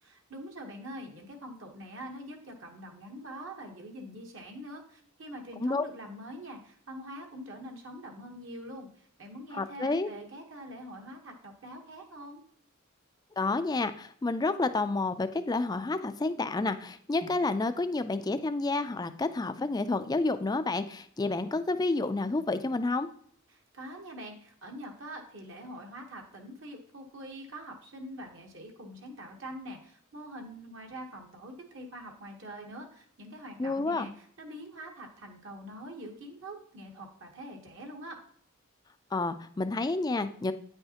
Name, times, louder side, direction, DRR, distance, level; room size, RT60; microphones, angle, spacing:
voice 1, 0.0-12.4 23.5-38.2, equal, 60° right, 2 dB, 1.2 m, -44 dB
voice 2, 9.5-10.1 13.4-23.1 33.6-34.1 39.1-40.5, left 3 dB, 20° left, 11 dB, 0.3 m, -29 dB
9.1 x 5.5 x 2.9 m, 0.62 s
head